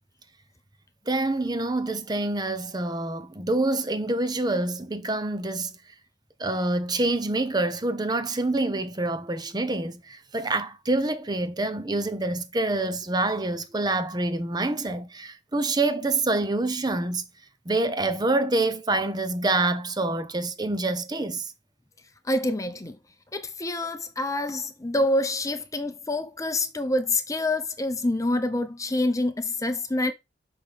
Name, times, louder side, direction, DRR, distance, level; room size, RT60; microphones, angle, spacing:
voice 1, 1.1-5.7 6.4-17.3 17.7-21.5, right 2 dB, 25° right, 0.8 m, -26 dB
voice 2, 22.2-23.0 23.3-30.1, left 2 dB, 20° left, 0.7 m, -26 dB
5.9 x 5.9 x 3.4 m
head